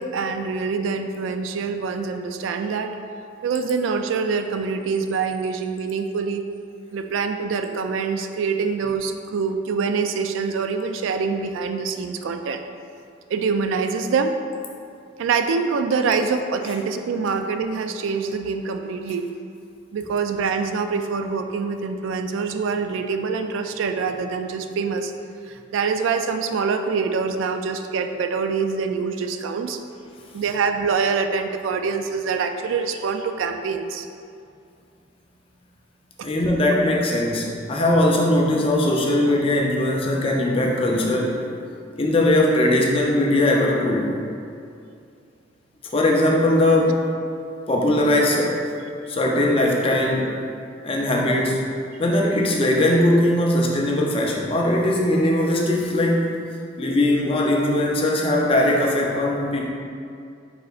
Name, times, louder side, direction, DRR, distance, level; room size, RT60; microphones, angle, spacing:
voice 1, 0.0-3.0 3.4-6.4 6.9-12.6 13.3-14.4 15.2-19.3 19.9-25.1 25.5-29.8 30.3-34.1 36.2-36.3 39.3-39.4, right 5 dB, 80° right, 8 dB, 0.3 m, -25 dB
voice 2, 36.2-41.4 42.0-44.2 45.9-47.1 47.7-48.6 49.1-50.3 50.8-51.7 52.0-56.2 56.8-59.7, left 1 dB, 30° left, -1 dB, 0.5 m, -20 dB
4.8 x 4.6 x 2.4 m, 2.5 s
head